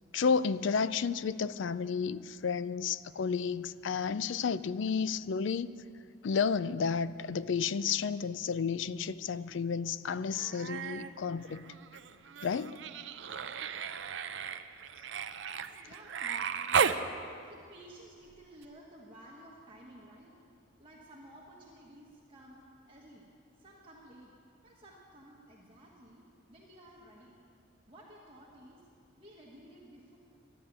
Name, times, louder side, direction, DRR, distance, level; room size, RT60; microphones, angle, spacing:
voice 1, 0.1-5.7 6.2-11.6 12.4-12.8, left 6 dB, 65° left, 16 dB, 0.4 m, -31 dB
Human voice, 10.3-11.1 11.4-17.0 18.6-18.7, right 6 dB, 60° right, 0.5 m, -35 dB
voice 2, 15.8-16.9 17.5-20.3 20.8-23.3 23.6-24.3 24.6-27.4 27.9-28.9 29.2-30.2, right 1 dB, 25° right, -4 dB, 1.4 m, -54 dB
12.0 x 11.0 x 8.6 m, 2.3 s
head